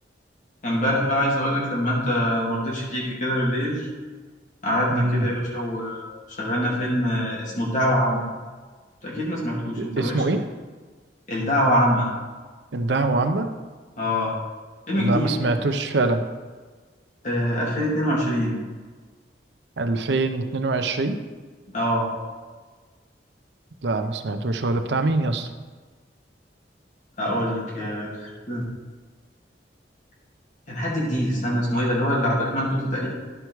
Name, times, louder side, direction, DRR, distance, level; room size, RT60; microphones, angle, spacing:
voice 1, 0.6-3.9 4.6-6.1 6.4-8.2 9.0-10.2 11.3-12.1 14.0-14.3 14.9-15.3 17.2-18.5 21.7-22.1 27.2-28.6 30.7-33.1, equal, 45° left, -4 dB, 2.3 m, -24 dB
voice 2, 4.9-5.3 9.8-10.4 12.7-13.5 14.9-16.2 19.8-21.2 23.8-25.5, right 2 dB, 75° right, 7 dB, 0.7 m, -24 dB
11.0 x 4.7 x 4.6 m, 1.4 s
head